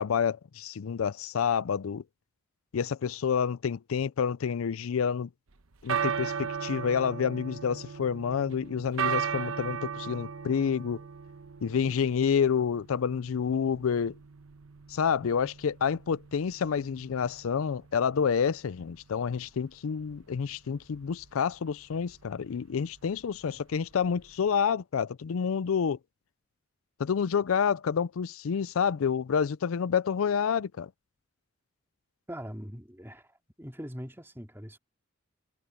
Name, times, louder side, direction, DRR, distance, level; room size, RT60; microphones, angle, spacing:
voice 1, 0.0-2.0 2.7-5.3 5.8-11.0 11.6-14.2 14.9-26.0 27.0-30.9, left 7 dB, 85° left, 0.4 m, -28 dB
sound 1, 5.5-24.6, right 7 dB, 90° right, 1.0 m, -38 dB
voice 2, 32.3-34.8, equal, 10° right, 2.9 m, -42 dB
head